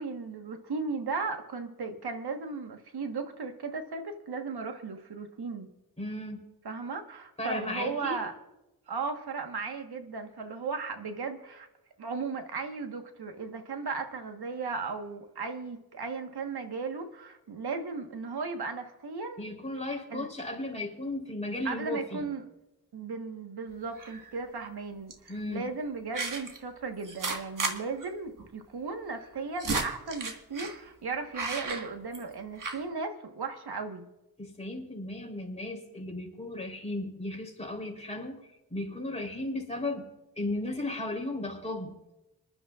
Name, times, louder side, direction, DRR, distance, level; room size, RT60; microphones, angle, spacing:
voice 1, 0.0-5.7 6.6-8.3 8.9-11.7 12.0-19.4 20.1-20.3 21.6-22.4 22.9-34.1, right 4 dB, 80° right, 6 dB, 1.4 m, -36 dB
voice 2, 6.0-6.5 7.4-8.2 19.4-22.3 25.3-25.6 34.4-38.4 38.7-40.1 40.4-42.0, left 2 dB, 15° left, 0 dB, 3.6 m, -35 dB
sound 1, 24.0-24.4 25.1-25.3 26.1-26.6 27.0-27.8 28.0-28.1 28.4-28.5 29.2-30.8 31.3-32.3 32.6-32.8, right 3 dB, 55° right, 1.6 m, -33 dB
25.5 x 11.5 x 2.4 m, 0.95 s
wide cardioid pair, 75°, 38 cm